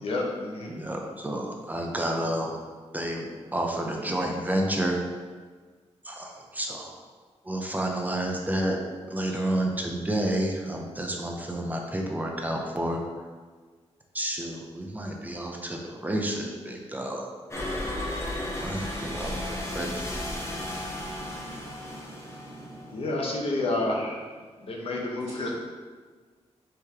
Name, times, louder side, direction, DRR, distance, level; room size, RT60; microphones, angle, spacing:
voice 1, 0.0-0.7 22.9-24.2 24.6-25.5, left 2 dB, 60° left, -1 dB, 0.8 m, -29 dB
voice 2, 0.7-2.6 2.9-5.0 6.0-7.0 7.4-8.8 9.1-13.0 14.1-17.3 18.6-19.3 19.7-20.0 20.3-20.4, right 1 dB, 15° right, 1 dB, 0.5 m, -30 dB
sound 1, 17.5-23.0, left 1 dB, 25° left, 0.8 m, -34 dB
voice 3, 18.4-24.0 25.2-25.5, right 1 dB, 80° right, -10 dB, 1.2 m, -46 dB
4.5 x 3.2 x 3.5 m, 1.5 s
wide cardioid pair, 145°, 11 cm